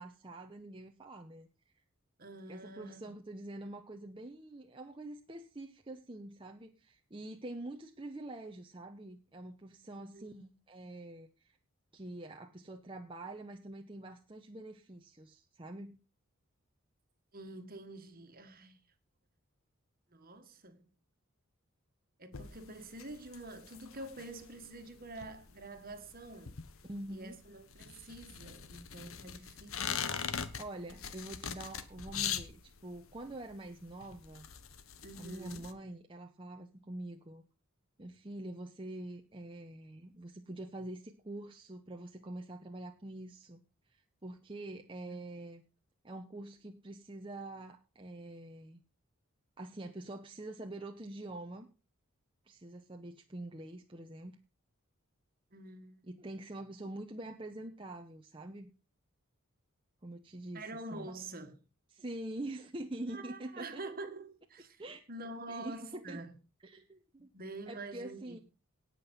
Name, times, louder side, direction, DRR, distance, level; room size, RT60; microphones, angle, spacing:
voice 1, 0.0-1.5 2.5-10.4 10.7-11.6 11.9-16.0 26.9-27.4 30.3-34.5 35.2-37.4 38.0-43.6 43.9-45.6 46.0-48.8 49.6-51.7 52.5-54.4 56.1-58.7 60.0-60.6 60.9-61.1 61.9-63.8 64.8-65.0 65.5-66.2 66.6-67.3 67.7-68.4, right 1 dB, 25° right, 0.9 m, -45 dB
voice 2, 2.2-3.1 10.0-10.5 17.3-18.8 20.1-20.9 22.2-26.5 27.1-30.1 35.0-35.7 45.1-45.2 55.5-56.1 60.5-61.6 63.1-64.8 65.1-66.4 67.3-68.4, right 2 dB, 45° right, 1.8 m, -47 dB
sound 1, 22.3-35.7, left 8 dB, 75° left, 1.2 m, -42 dB
18.5 x 6.1 x 5.5 m
head